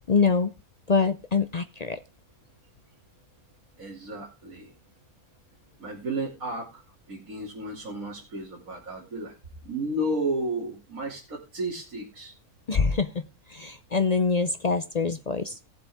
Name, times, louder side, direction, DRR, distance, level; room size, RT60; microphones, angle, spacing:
voice 1, 0.1-0.5 0.9-2.0 12.7-13.2 13.5-15.6, left 4 dB, 60° left, 11 dB, 0.4 m, -24 dB
voice 2, 3.8-4.7 5.8-6.6 7.1-9.3 9.6-12.3, right 1 dB, 65° right, -4 dB, 3.1 m, -32 dB
18.0 x 7.6 x 3.5 m, 0.27 s
omnidirectional pair, 1.6 m